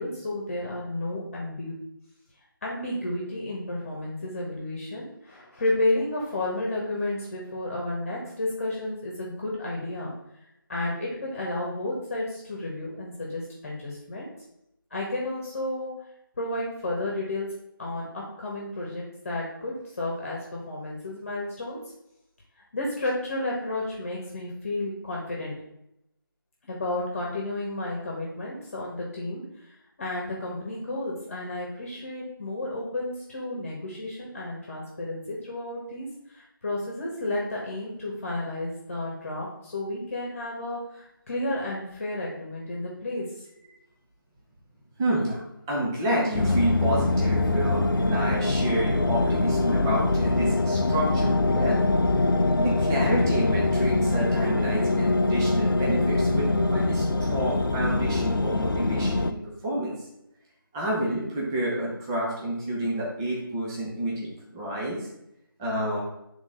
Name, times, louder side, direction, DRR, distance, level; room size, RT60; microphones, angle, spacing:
voice 1, 0.0-1.8 2.6-10.1 10.7-14.3 14.9-15.9 16.4-17.5 17.8-21.8 22.7-25.5 26.6-43.4, left 2 dB, 35° left, -3 dB, 1.3 m, -32 dB
voice 2, 45.0-45.4 45.7-51.9 52.6-59.4 59.6-59.9 60.7-65.1 65.6-66.0, right 1 dB, 10° right, -5 dB, 0.6 m, -29 dB
sound 1, 46.3-59.3, left 2 dB, 70° left, 0.5 m, -23 dB
7.2 x 3.7 x 3.8 m, 0.82 s
figure-of-eight pair, 165°, 12 cm